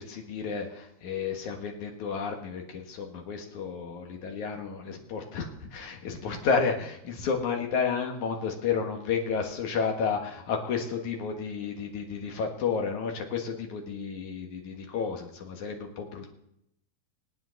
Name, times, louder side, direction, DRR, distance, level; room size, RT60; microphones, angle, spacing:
voice 1, 0.0-16.3, left 5 dB, 60° left, 2 dB, 2.7 m, -31 dB
25.5 x 9.0 x 4.0 m, 0.79 s
omnidirectional pair, 4.4 m